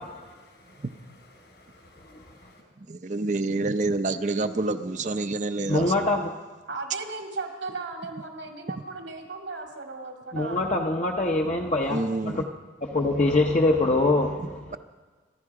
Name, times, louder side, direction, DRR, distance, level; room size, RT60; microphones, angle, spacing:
voice 1, 0.0-2.6, left 1 dB, 75° left, 4.6 m, -55 dB
voice 2, 2.9-5.8 11.9-12.4, right 2 dB, 40° right, 0.6 m, -27 dB
voice 3, 5.7-6.2 10.3-12.4 12.8-14.7, left 2 dB, 40° left, 0.8 m, -24 dB
voice 4, 6.7-10.6, right 3 dB, 85° right, 2.5 m, -36 dB
26.5 x 11.0 x 4.8 m
head